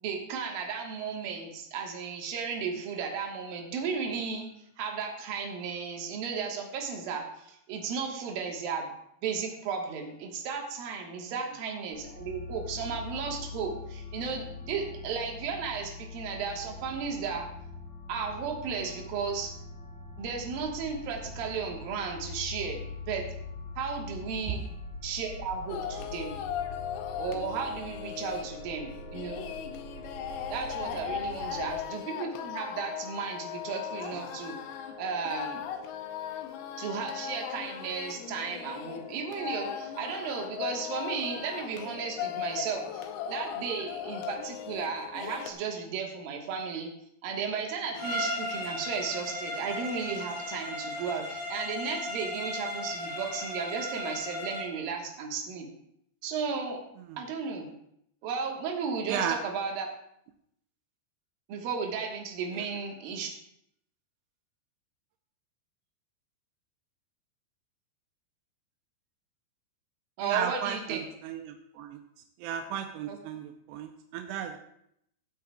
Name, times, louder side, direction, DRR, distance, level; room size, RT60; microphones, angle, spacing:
voice 1, 0.0-4.5 4.8-8.9 9.2-17.5 18.1-19.5 20.2-23.3 23.8-24.6 25.0-26.4 27.2-29.5 30.5-34.6 35.0-35.6 36.8-46.9 47.2-55.7 56.2-56.8 57.2-57.7 58.2-59.9 61.5-63.3 70.2-71.0 73.1-73.2, right 5 dB, 65° right, 1 dB, 2.8 m, -34 dB
sound 1, 11.9-31.8, left 3 dB, 65° left, 4.0 m, -43 dB
sound 2, 25.7-45.5, left 9 dB, 85° left, 2.2 m, -38 dB
Bowed string instrument, 47.9-54.8, left 1 dB, 35° left, 3.4 m, -36 dB
voice 2, 59.1-59.4 62.5-62.7 70.2-72.0 72.4-74.6, right 9 dB, 85° right, 5 dB, 2.5 m, -35 dB
17.5 x 8.3 x 2.3 m, 0.73 s
omnidirectional pair, 5.3 m